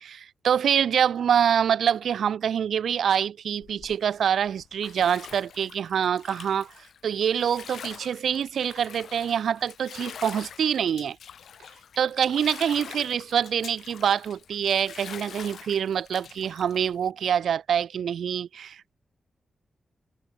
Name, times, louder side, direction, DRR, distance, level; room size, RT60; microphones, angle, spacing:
voice 1, 0.0-6.7 7.0-11.2 12.0-18.9, right 8 dB, 85° right, 0.3 m, -25 dB
Bathtub (filling or washing), 3.6-17.1, left 8 dB, 80° left, 2.0 m, -45 dB
wide cardioid pair, 145°, 0 cm